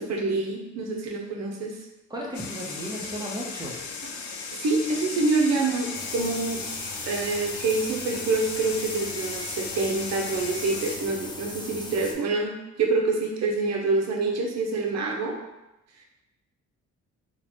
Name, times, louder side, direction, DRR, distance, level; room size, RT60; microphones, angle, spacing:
voice 1, 0.0-1.8 4.0-4.1 4.5-6.6 7.1-15.4, right 3 dB, 60° right, 1 dB, 0.8 m, -26 dB
voice 2, 2.1-3.8, equal, 15° right, -4 dB, 0.9 m, -34 dB
sound 1, 2.3-11.0, left 4 dB, 75° left, 0.6 m, -36 dB
sound 2, 5.9-12.1, left 2 dB, 15° left, 0.4 m, -39 dB
3.8 x 2.3 x 3.1 m, 0.95 s
cardioid pair, 90°, 30 cm